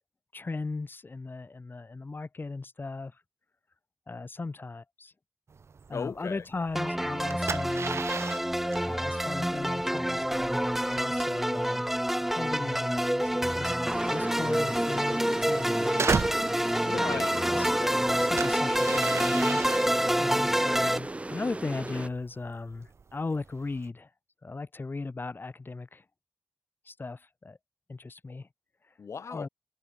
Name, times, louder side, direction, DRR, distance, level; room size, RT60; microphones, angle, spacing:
voice 1, 0.3-3.2 4.1-5.1 5.9-8.0 8.8-13.8 14.1-16.9 17.5-17.7 18.3-24.1 24.4-26.0 26.8-27.6 27.9-28.5 28.9-29.0 29.3-29.5, left 3 dB, 45° left, 3.3 m, -38 dB
sound 1, 5.5-23.9, right 5 dB, 70° right, 1.0 m, -38 dB
voice 2, 5.9-6.4 16.8-18.0 28.3-28.4 29.0-29.5, left 6 dB, 90° left, 1.3 m, -37 dB
sound 2, 6.7-21.0, equal, 5° right, 0.9 m, -27 dB
sound 3, 13.9-22.1, right 2 dB, 25° right, 5.2 m, -37 dB
wide cardioid pair, 70°, 5 cm